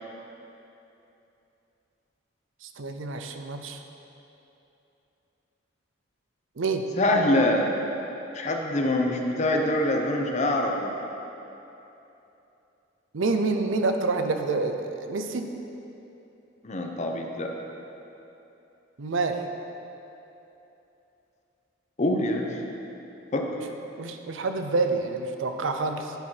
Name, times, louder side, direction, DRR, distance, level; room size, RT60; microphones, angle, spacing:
voice 1, 2.6-3.8 6.6-6.8 13.1-15.5 19.0-19.4 24.0-26.1, right 3 dB, 75° right, 6 dB, 0.6 m, -27 dB
voice 2, 7.0-7.7 8.3-10.9 16.6-17.5 22.0-22.6 23.3-23.5, left 1 dB, 35° left, 2 dB, 0.7 m, -24 dB
9.0 x 5.6 x 4.5 m, 3.0 s
head